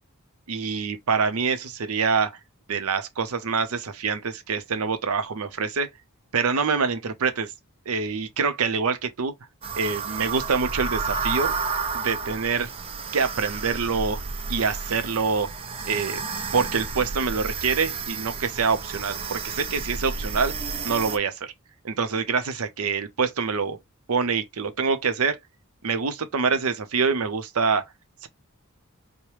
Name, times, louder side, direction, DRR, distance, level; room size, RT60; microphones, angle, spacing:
voice 1, 0.5-2.3 2.7-5.9 6.3-7.5 7.9-9.3 9.8-11.6 11.9-12.7 13.1-14.2 14.5-15.5 15.8-16.2 16.5-20.5 20.8-21.5 21.8-23.8 24.1-25.4 25.8-27.9 28.2-28.3, right 5 dB, 75° right, 0.6 m, -25 dB
sound 1, 9.6-21.2, right 5 dB, 25° right, 0.3 m, -31 dB
4.8 x 2.1 x 2.9 m
head